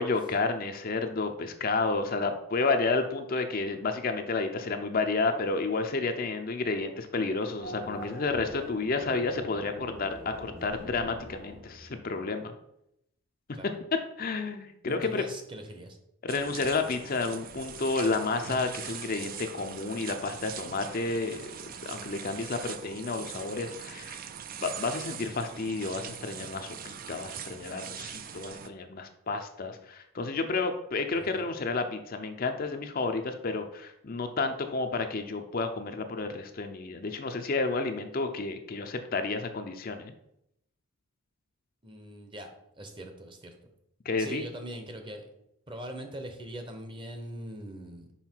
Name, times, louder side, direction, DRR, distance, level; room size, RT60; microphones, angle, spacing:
voice 1, 0.0-12.5 14.2-15.2 16.2-21.4 21.8-24.2 24.6-40.1 44.1-44.4, left 3 dB, 40° left, 6 dB, 0.5 m, -31 dB
Race car auto racing / Accelerating revving vroom, 7.6-12.3, right 1 dB, 60° right, 2.8 m, -44 dB
voice 2, 14.9-16.0 31.1-31.5 41.8-42.5 42.8-43.5 44.2-45.3 45.7-48.1, right 1 dB, 20° right, 5 dB, 0.8 m, -41 dB
sound 1, 16.3-28.7, right 8 dB, 40° right, 0.4 m, -42 dB
5.7 x 5.3 x 4.5 m, 0.79 s
head